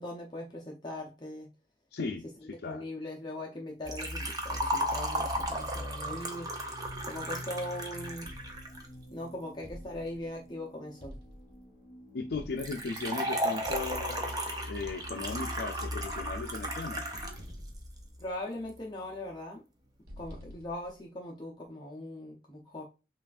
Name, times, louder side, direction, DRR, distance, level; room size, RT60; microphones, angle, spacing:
voice 1, 0.0-1.5 2.6-6.5 7.1-8.3 9.1-11.1 18.2-19.6 20.2-22.9, left 1 dB, 25° left, 0.6 m, -40 dB
voice 2, 1.9-2.8 12.1-17.0, left 4 dB, 70° left, 0.4 m, -37 dB
sound 1, 3.8-19.4, left 1 dB, ahead, 2.1 m, -45 dB
Liquid, 3.9-8.9 12.6-17.4 17.7-17.8 18.7-18.8, right 1 dB, 20° right, 0.7 m, -35 dB
sound 2, 5.3-5.9 6.8-7.4 8.2-9.0 9.6-10.4 11.0-11.6 12.3-13.1 13.6-14.3 14.8-15.6 15.9-16.8 17.1-18.6 20.1-21.0, equal, 60° right, 1.0 m, -49 dB
5.6 x 2.4 x 2.4 m
head